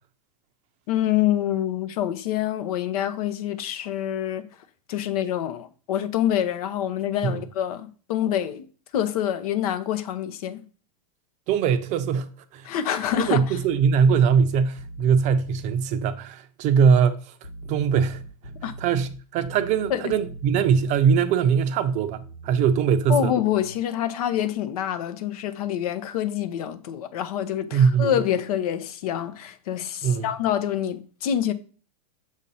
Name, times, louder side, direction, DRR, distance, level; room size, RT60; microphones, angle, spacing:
voice 1, 0.9-4.5 4.9-8.7 8.9-10.6 12.6-13.6 18.6-18.7 19.9-20.1 23.1-31.5, left 10 dB, 70° left, 0.8 m, -26 dB
voice 2, 11.5-12.7 13.2-17.2 17.7-18.2 18.8-23.3 27.7-28.1 30.0-30.3, right 6 dB, 35° right, 0.5 m, -21 dB
sound 1, 13.1-15.7 17.4-21.1 22.1-23.8, right 1 dB, 90° left, 1.6 m, -42 dB
6.4 x 2.7 x 5.4 m
hypercardioid pair, 125°, 20 cm